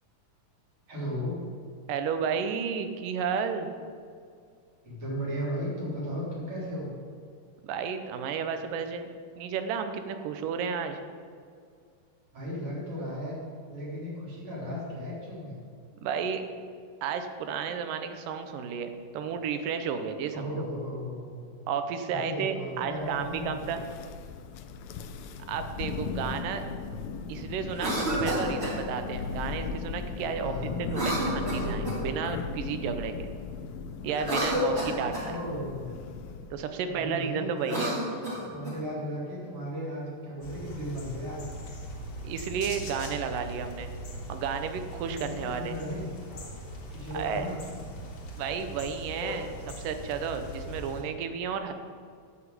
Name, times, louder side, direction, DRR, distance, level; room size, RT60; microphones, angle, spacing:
voice 1, 0.9-1.4 4.8-6.9 12.3-13.3 13.7-15.6 20.3-21.3 22.0-23.6 30.4-30.8 35.1-36.0 36.3-36.4 36.8-37.8 38.5-41.7 45.1-46.1 46.9-47.8, equal, 40° right, -6 dB, 4.1 m, -35 dB
voice 2, 1.9-3.7 7.6-11.0 16.0-16.4 17.0-20.6 21.7-23.8 25.5-26.6 27.3-33.3 34.0-35.4 36.5-38.0 42.2-43.9 44.3-45.8 47.1-47.5 48.4-51.7, right 6 dB, 85° right, 8 dB, 2.4 m, -32 dB
Thunder, 23.0-36.6, left 5 dB, 80° left, 1.7 m, -37 dB
Cough, 27.7-28.8 30.9-32.1 34.1-35.3 37.5-38.8, equal, 20° right, 2.5 m, -30 dB
sound 1, 40.4-51.0, equal, 40° left, 2.3 m, -40 dB
11.5 x 5.9 x 7.8 m, 2.2 s
omnidirectional pair, 3.8 m